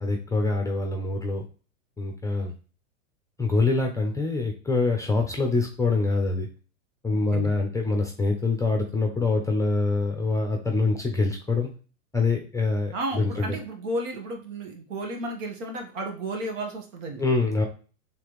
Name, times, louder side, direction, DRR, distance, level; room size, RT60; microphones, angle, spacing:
voice 1, 0.0-1.4 2.0-2.5 3.4-6.5 7.0-11.7 12.1-13.5 17.2-17.6, left 3 dB, 10° left, 3 dB, 0.6 m, -25 dB
voice 2, 7.1-7.5 12.9-17.2, right 1 dB, 60° right, 2 dB, 1.5 m, -33 dB
4.7 x 3.5 x 3.1 m, 0.37 s
hypercardioid pair, 110°, 42 cm